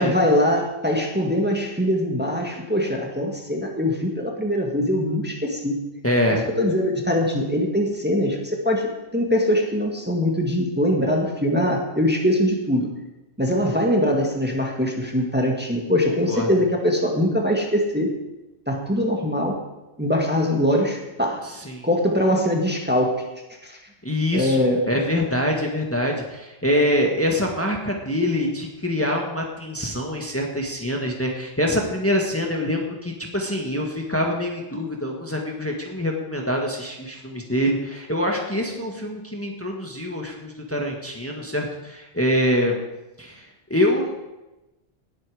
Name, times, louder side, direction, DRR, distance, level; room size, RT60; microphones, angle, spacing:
voice 1, 0.0-5.8 6.6-8.4 8.6-12.9 13.4-18.1 18.7-19.6 20.0-21.4 21.8-23.3 23.6-23.8 24.3-24.8, left 1 dB, 10° right, 1 dB, 1.8 m, -22 dB
voice 2, 6.0-6.5 16.0-16.5 21.4-21.9 24.0-42.8 43.2-44.3, left 1 dB, 15° left, 0 dB, 1.7 m, -25 dB
19.0 x 8.7 x 5.0 m, 1.0 s
omnidirectional pair, 1.1 m